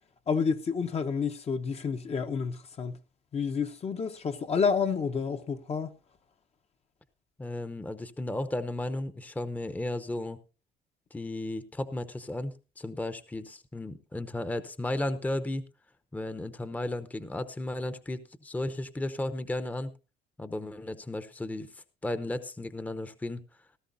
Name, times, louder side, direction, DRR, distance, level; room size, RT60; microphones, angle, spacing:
voice 1, 0.3-3.0 3.3-5.9, left 5 dB, 35° left, 0.8 m, -29 dB
voice 2, 7.4-10.4 11.1-15.6 16.1-19.9 20.4-23.4, left 1 dB, 10° left, 0.8 m, -34 dB
17.0 x 13.5 x 2.6 m
cardioid pair, 110°, 17 cm